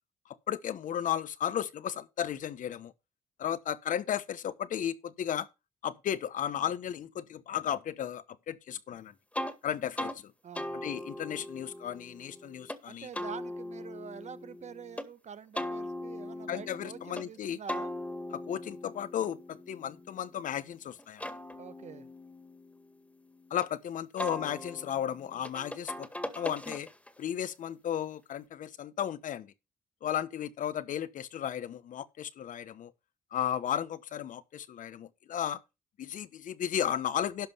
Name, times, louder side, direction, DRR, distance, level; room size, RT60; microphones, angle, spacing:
voice 1, 0.5-2.9 3.4-5.5 5.8-9.1 9.6-10.2 10.8-13.1 16.5-17.6 18.3-21.3 23.5-26.1 26.4-26.9 27.2-29.5 30.0-32.9 33.3-35.6 36.0-37.5, left 10 dB, 70° left, 1.0 m, -34 dB
sound 1, 9.3-9.6 10.0-10.2 10.6-12.8 13.1-15.1 15.6-17.3 17.7-20.6 21.0-23.7 24.2-27.2, left 1 dB, 10° left, 1.8 m, -40 dB
voice 2, 10.4-10.8 12.9-17.9 21.6-22.1, right 7 dB, 55° right, 1.1 m, -46 dB
12.0 x 5.3 x 5.5 m
supercardioid pair, 55°, 14 cm